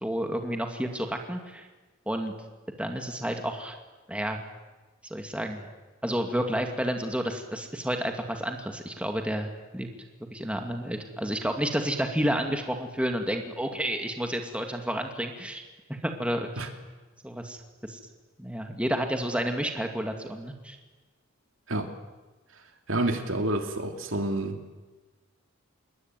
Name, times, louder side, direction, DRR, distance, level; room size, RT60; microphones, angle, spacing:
voice 1, 0.0-1.7 2.1-2.3 2.8-3.8 4.1-4.4 5.0-5.7 6.0-9.9 10.3-15.6 15.9-16.7 17.2-18.0 18.4-20.8, equal, 5° right, 4 dB, 2.5 m, -30 dB
voice 2, 22.9-24.8, right 1 dB, 65° right, 5 dB, 2.9 m, -29 dB
27.5 x 22.0 x 9.4 m, 1.2 s
head